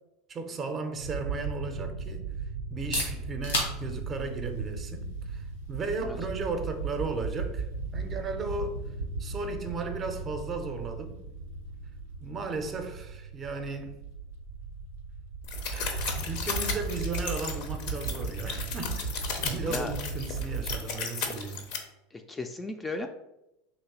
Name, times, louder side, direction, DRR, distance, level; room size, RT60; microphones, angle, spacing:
voice 1, 0.3-7.6 7.9-8.8 9.2-11.2 12.2-14.0 15.7-19.1 19.4-21.7, right 3 dB, 35° right, 0.5 m, -35 dB
sound 1, 1.0-20.8, right 4 dB, 90° right, 0.4 m, -37 dB
sound 2, 2.6-18.3, left 2 dB, 85° left, 1.1 m, -43 dB
sound 3, 15.4-21.8, left 5 dB, 65° left, 0.6 m, -35 dB
voice 2, 19.5-19.9 22.1-23.1, left 2 dB, 15° left, 0.3 m, -36 dB
3.2 x 3.0 x 3.0 m
hypercardioid pair, 85°, 0 cm